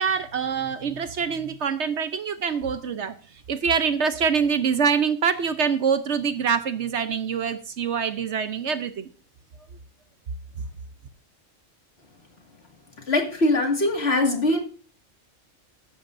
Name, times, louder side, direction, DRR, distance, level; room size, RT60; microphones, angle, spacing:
voice 1, 0.0-3.2 3.5-9.1 10.6-10.7, right 6 dB, 60° right, 10 dB, 1.0 m, -25 dB
voice 2, 13.1-14.6, left 2 dB, 50° left, 2 dB, 2.3 m, -22 dB
14.5 x 11.5 x 2.6 m, 0.39 s
omnidirectional pair, 1.4 m